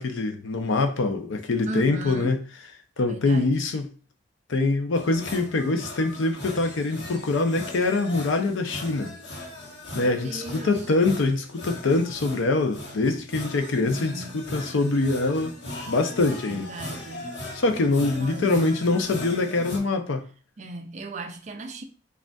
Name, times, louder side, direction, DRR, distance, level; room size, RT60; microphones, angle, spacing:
voice 1, 0.0-2.4 3.0-3.9 4.5-9.1 9.9-15.6 15.9-16.7 17.5-20.3, left 3 dB, 85° left, 0.5 m, -24 dB
voice 2, 1.6-2.4 3.1-3.7 9.9-10.8 13.7-14.4 16.4-17.3 18.2-18.8 20.6-21.8, right 2 dB, 35° right, 0.4 m, -37 dB
sound 1, 4.9-19.8, left 1 dB, 65° left, 1.0 m, -39 dB
5.0 x 2.4 x 2.3 m
head